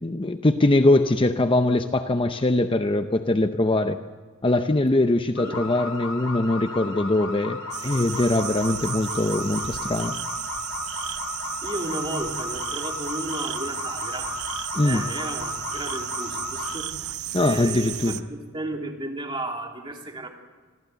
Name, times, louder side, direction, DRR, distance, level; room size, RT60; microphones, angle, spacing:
voice 1, 0.0-4.0 4.4-10.2 14.7-15.0 17.3-18.2, left 2 dB, 25° left, 8 dB, 0.6 m, -22 dB
sound 1, 5.4-16.8, left 3 dB, 70° left, 4.3 m, -34 dB
sound 2, 7.7-18.2, right 12 dB, 85° right, 0.9 m, -34 dB
voice 2, 11.6-14.3 14.8-16.9 17.4-20.3, right 1 dB, 25° right, 1 dB, 2.8 m, -34 dB
26.0 x 15.0 x 8.1 m, 1.5 s
head